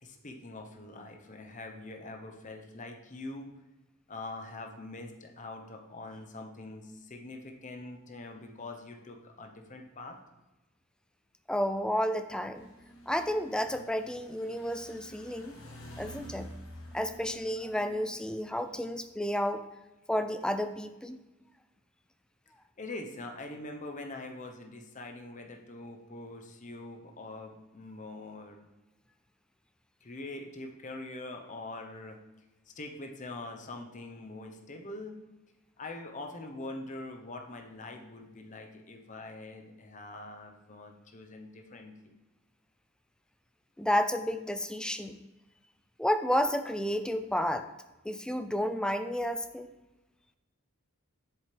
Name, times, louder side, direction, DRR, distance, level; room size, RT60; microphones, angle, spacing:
voice 1, 0.0-3.5 4.1-10.2 22.8-28.7 30.0-32.2 32.7-35.2 35.8-42.1, left 2 dB, 35° left, 3 dB, 0.9 m, -43 dB
voice 2, 11.5-12.7 13.1-15.6 16.0-16.5 16.9-19.6 20.1-21.2 43.8-45.2 46.0-47.7 48.0-49.7, equal, 5° left, 9 dB, 0.4 m, -31 dB
sound 1, 12.5-18.8, equal, 75° left, 1.7 m, -49 dB
7.7 x 7.1 x 3.3 m, 1.0 s
head